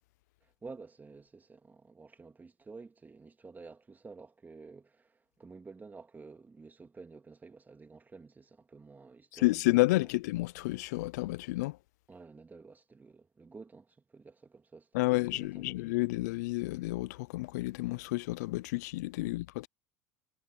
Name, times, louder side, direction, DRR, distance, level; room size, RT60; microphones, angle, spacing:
voice 1, 0.4-10.1 12.1-15.9 19.2-19.3, right 4 dB, 20° right, 3.0 m, -51 dB
voice 2, 9.3-11.8 14.9-19.7, left 21 dB, 85° left, 0.4 m, -30 dB
supercardioid pair, 95°, 9 cm